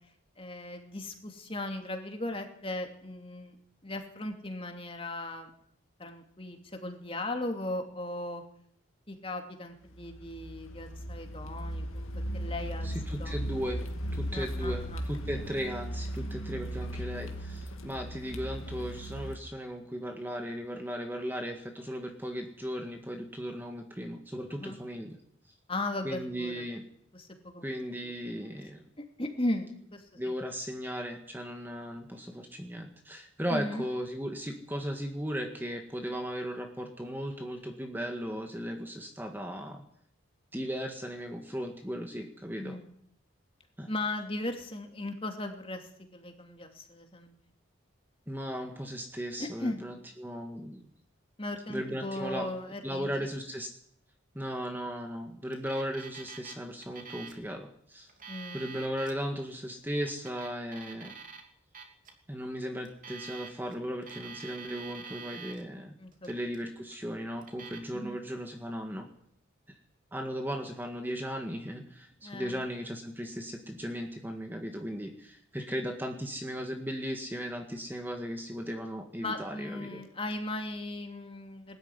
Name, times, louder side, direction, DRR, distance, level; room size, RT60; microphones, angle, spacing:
voice 1, 0.4-3.6 3.8-5.5 6.0-8.4 9.1-12.1 12.3-12.9 13.2-13.4 14.3-15.0 24.5-24.8 25.7-26.6 27.1-27.7 28.0-28.1 29.0-30.3 33.5-33.9 42.6-42.9 43.9-47.3 49.4-49.8 51.4-53.3 58.3-58.6 66.0-66.3 67.9-68.2 72.2-72.7 79.2-81.8, left 1 dB, 25° left, 4 dB, 2.8 m, -37 dB
Car, 9.9-19.4, equal, 90° left, 2.5 m, -37 dB
voice 2, 12.8-13.8 14.1-25.2 26.0-26.8 27.6-28.8 30.2-39.8 40.5-42.8 43.8-43.9 48.3-50.8 51.7-52.5 52.8-53.7 54.3-58.1 58.5-61.1 62.3-65.9 66.2-69.1 70.1-80.0, equal, 10° right, 3 dB, 1.8 m, -36 dB
Alarm, 55.5-56.5 56.8-57.4 58.0-59.1 59.9-61.4 61.7-62.1 62.8-63.7 64.0-65.6 66.1-66.6 67.4-67.8, right 6 dB, 40° right, 3.1 m, -46 dB
21.0 x 13.5 x 9.8 m, 0.68 s
head